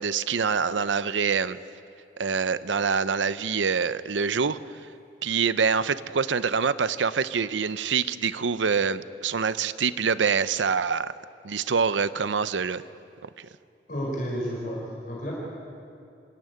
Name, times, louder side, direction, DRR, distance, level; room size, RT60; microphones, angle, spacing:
voice 1, 0.0-1.6 2.2-4.6 5.2-11.1 11.4-12.8 13.2-13.3, right 6 dB, 90° right, 14 dB, 0.6 m, -25 dB
voice 2, 13.9-15.3, equal, 45° left, -4 dB, 4.9 m, -31 dB
26.0 x 14.5 x 9.4 m, 2.5 s
head